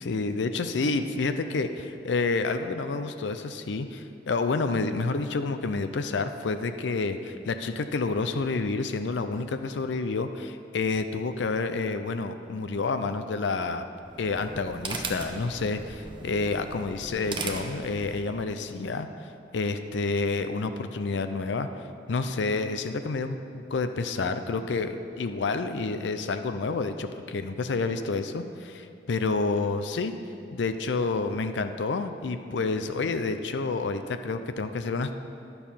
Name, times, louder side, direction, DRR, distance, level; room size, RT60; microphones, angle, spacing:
voice 1, 0.0-13.9 14.2-19.1 19.5-21.7 22.1-30.1 30.5-35.2, left 3 dB, 90° left, 9 dB, 0.5 m, -29 dB
sound 1, 14.0-18.5, right 3 dB, 25° right, 0.7 m, -38 dB
10.5 x 6.9 x 5.6 m, 2.6 s
head